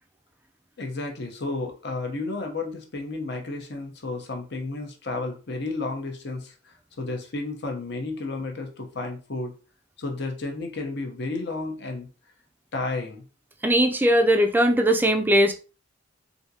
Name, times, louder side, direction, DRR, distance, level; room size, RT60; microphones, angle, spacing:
voice 1, 0.8-9.5 10.0-12.1 12.7-13.2, left 3 dB, 55° left, 0.8 m, -32 dB
voice 2, 13.6-15.5, right 1 dB, 10° right, 0.4 m, -19 dB
3.5 x 2.6 x 2.7 m
head